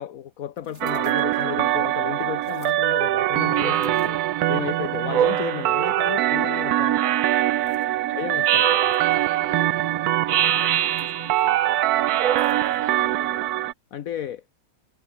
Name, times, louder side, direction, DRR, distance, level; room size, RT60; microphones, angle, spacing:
voice 1, 0.0-4.2 4.5-7.0 8.1-8.8 13.9-14.4, left 10 dB, 70° left, 1.3 m, -33 dB
sound 1, 0.6-1.6 2.4-2.8 3.8-4.7 5.4-5.5 7.6-7.9 8.9-9.4 10.7-11.1 12.4-13.0, right 2 dB, 50° right, 4.4 m, -53 dB
sound 2, 0.8-13.7, right 14 dB, 85° right, 1.2 m, -23 dB
Speech synthesizer, 3.6-4.4 5.1-6.0 6.9-7.8 8.4-9.5 10.3-11.5 12.1-13.1, right 10 dB, 65° right, 1.2 m, -25 dB
voice 2, 8.1-13.5, left 2 dB, 30° left, 3.1 m, -45 dB
omnidirectional pair, 1.6 m